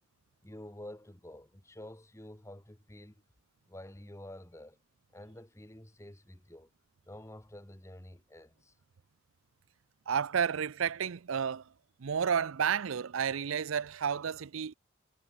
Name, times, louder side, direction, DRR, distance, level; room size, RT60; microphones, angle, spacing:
voice 1, 0.4-3.2 3.7-4.8 5.1-6.7 7.0-8.7, left 1 dB, 15° left, 1.5 m, -49 dB
voice 2, 10.1-11.7 12.0-14.7, right 7 dB, 80° right, 0.5 m, -31 dB
head